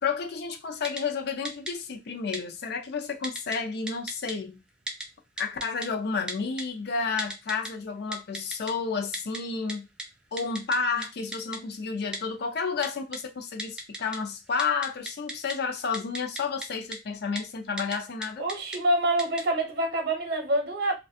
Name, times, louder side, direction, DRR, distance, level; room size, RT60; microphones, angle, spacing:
voice 1, 0.0-4.6 5.4-9.9 10.3-18.4, left 5 dB, 60° left, 0.5 m, -31 dB
Typing, 0.8-1.0 1.4-1.7 2.3-2.4 3.2-3.6 3.9-4.3 4.9-5.0 5.4-5.9 6.3-6.6 7.2-7.7 8.1-8.7 9.1-9.4 9.7-9.8 10.0-10.1 10.4-10.8 11.0-11.1 11.3-11.6 12.1-12.2 12.8-13.2 13.6-14.2 14.5-15.5 15.9-16.7 16.9-17.0 17.4-17.5 17.8-18.0 18.2-18.8 19.2-19.4, right 1 dB, 5° right, 0.4 m, -35 dB
voice 2, 18.4-20.9, right 1 dB, 60° right, 0.7 m, -26 dB
2.4 x 2.2 x 2.6 m
head